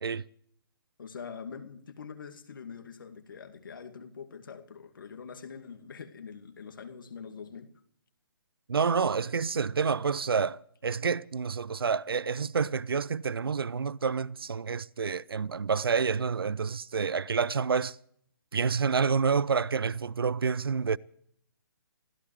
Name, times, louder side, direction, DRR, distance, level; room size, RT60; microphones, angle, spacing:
voice 1, 1.0-7.7, left 6 dB, 60° left, 2.2 m, -44 dB
voice 2, 8.7-18.0 18.5-21.0, right 5 dB, 75° right, 0.5 m, -28 dB
25.5 x 16.0 x 3.2 m
figure-of-eight pair, 135°, 12 cm